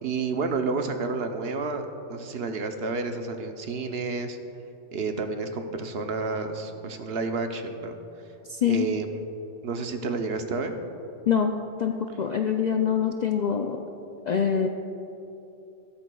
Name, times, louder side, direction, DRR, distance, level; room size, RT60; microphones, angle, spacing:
voice 1, 0.0-4.4 4.9-8.0 8.7-9.1 9.6-10.7, right 4 dB, 65° right, 6 dB, 0.9 m, -30 dB
voice 2, 8.5-8.9 11.3-11.5 11.8-13.8 14.2-14.7, left 7 dB, 60° left, 4 dB, 0.4 m, -24 dB
15.5 x 13.0 x 2.3 m, 2.9 s
omnidirectional pair, 1.2 m